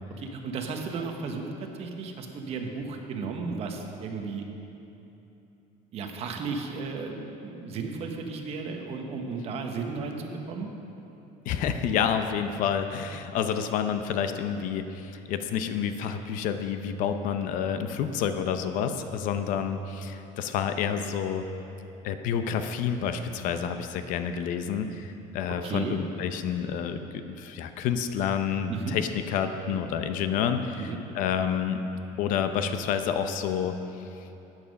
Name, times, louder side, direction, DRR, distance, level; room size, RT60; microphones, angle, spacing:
voice 1, 0.2-4.4 5.9-10.7 25.6-26.0 28.7-29.0 30.8-31.0, right 4 dB, 40° right, 3 dB, 1.1 m, -34 dB
voice 2, 11.5-21.4 22.0-31.8 32.2-33.8, left 7 dB, 60° left, 8 dB, 0.7 m, -29 dB
12.5 x 9.1 x 5.3 m, 2.9 s
cardioid pair, 165°, 16 cm